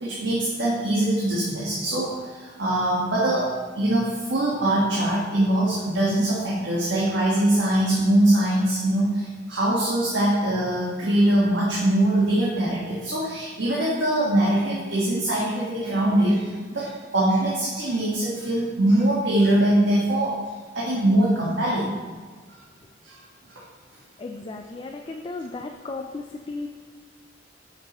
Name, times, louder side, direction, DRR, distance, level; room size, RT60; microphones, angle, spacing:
voice 1, 0.0-3.5 3.7-20.5 20.7-22.0 23.0-23.1, right 1 dB, 80° right, -7 dB, 1.4 m, -22 dB
voice 2, 24.2-26.7, left 3 dB, 30° left, 3 dB, 0.3 m, -35 dB
8.2 x 6.0 x 3.0 m, 1.5 s
head